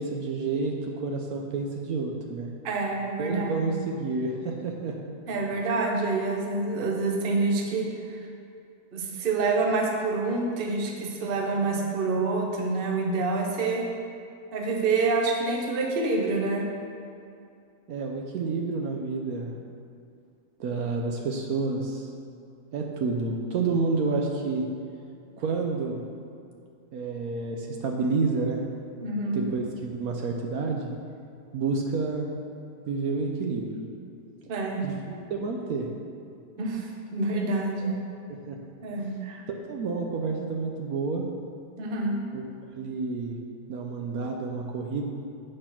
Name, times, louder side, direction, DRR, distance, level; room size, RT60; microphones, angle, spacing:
voice 1, 0.0-2.5 3.2-4.9 17.9-19.5 20.6-22.1 22.7-24.6 25.4-26.0 26.9-28.6 29.3-30.9 31.5-32.3 32.9-33.8 34.8-35.9 37.8-37.9 38.5-38.6 39.0-39.2 39.7-41.3 42.3-42.4 42.8-43.4 43.7-45.0, right 4 dB, 70° right, 1 dB, 1.0 m, -29 dB
voice 2, 2.6-3.7 5.3-8.2 8.9-13.9 14.5-16.6 29.0-29.4 34.5-34.8 36.6-37.9 38.8-39.4 41.8-42.2, right 3 dB, 45° right, 1 dB, 0.8 m, -27 dB
7.6 x 4.3 x 5.8 m, 2.5 s
omnidirectional pair, 1.7 m